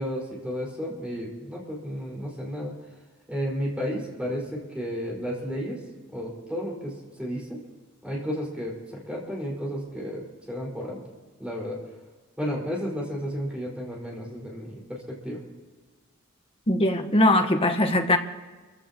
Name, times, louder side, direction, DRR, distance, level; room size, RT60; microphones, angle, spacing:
voice 1, 0.0-2.7 3.3-5.8 6.1-7.6 8.0-11.0 11.4-11.8 12.4-15.4, equal, 5° right, -4 dB, 5.2 m, -32 dB
voice 2, 16.7-18.2, left 1 dB, 25° left, 5 dB, 1.2 m, -21 dB
29.0 x 16.0 x 3.0 m, 1.4 s
head